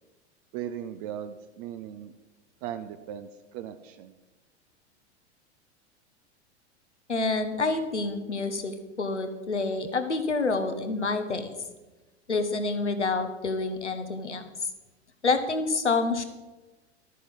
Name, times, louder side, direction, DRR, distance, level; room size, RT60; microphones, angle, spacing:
voice 1, 0.5-2.1 2.6-4.2, right 10 dB, 35° right, 9 dB, 0.6 m, -38 dB
voice 2, 7.1-11.5 12.3-14.7 15.2-16.2, left 3 dB, 80° left, 8 dB, 1.3 m, -28 dB
12.5 x 9.2 x 5.4 m, 1.1 s
figure-of-eight pair, 90°, 34 cm